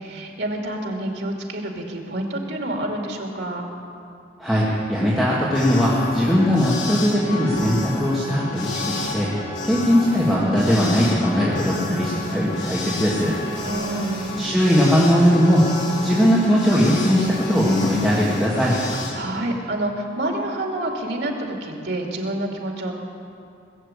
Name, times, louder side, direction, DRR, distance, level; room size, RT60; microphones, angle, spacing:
voice 1, 0.0-3.6 13.6-14.6 19.1-22.9, right 1 dB, 85° right, 1 dB, 2.3 m, -28 dB
voice 2, 4.4-9.3 9.6-13.4 14.4-15.7 16.0-18.8, equal, ahead, -8 dB, 1.9 m, -19 dB
sound 1, 5.5-19.1, left 2 dB, 85° left, 2.8 m, -30 dB
20.0 x 7.5 x 8.3 m, 2.5 s
head